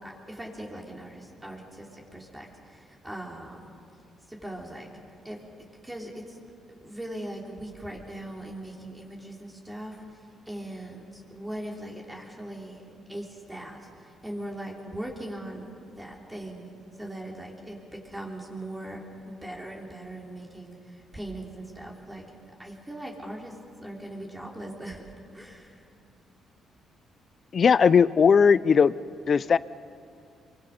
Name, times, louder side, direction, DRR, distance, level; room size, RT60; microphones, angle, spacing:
voice 1, 0.0-3.6 4.3-4.9 5.2-5.4 5.8-6.4 6.8-12.8 13.1-15.7 16.0-16.7 17.0-22.2 22.6-23.5 23.8-25.1 25.3-25.8, right 1 dB, 10° right, -1 dB, 3.6 m, -40 dB
voice 2, 27.5-28.9 29.3-29.6, left 6 dB, 45° left, 18 dB, 0.5 m, -18 dB
26.0 x 24.0 x 5.4 m, 2.6 s
cardioid pair, 90°, 0 cm